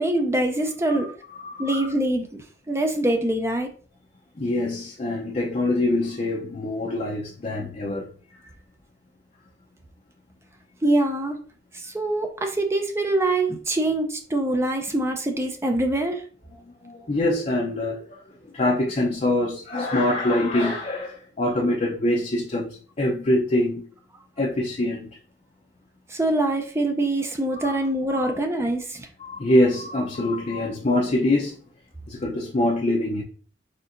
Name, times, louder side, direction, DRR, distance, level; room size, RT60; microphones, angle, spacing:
voice 1, 0.0-1.1 1.6-3.7 10.8-11.4 11.7-16.2 26.1-29.1, right 1 dB, 15° right, 0.5 m, -24 dB
voice 2, 0.9-1.9 4.4-8.1 16.5-23.9 24.4-25.1 27.6-27.7 28.1-28.3 29.2-31.6 32.1-33.2, left 1 dB, 40° left, 0.6 m, -24 dB
4.3 x 3.9 x 2.5 m
head